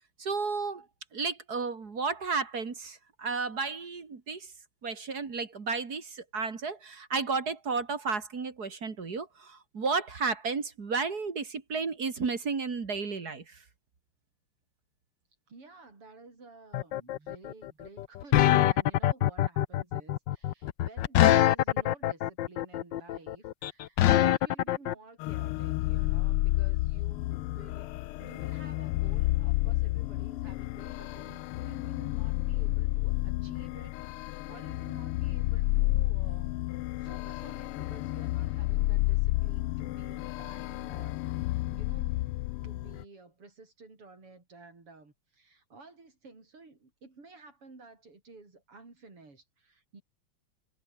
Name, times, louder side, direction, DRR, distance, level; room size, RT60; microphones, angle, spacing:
voice 1, 0.2-0.9 1.1-4.5 4.8-13.6, right 4 dB, 45° right, 2.7 m, -33 dB
voice 2, 15.5-36.7 37.0-42.3 42.6-50.0, right 3 dB, 90° right, 6.7 m, -53 dB
sound 1, 16.7-24.9, left 13 dB, 65° left, 1.3 m, -24 dB
sound 2, 25.2-43.0, left 18 dB, 85° left, 1.5 m, -31 dB
omnidirectional pair, 2.4 m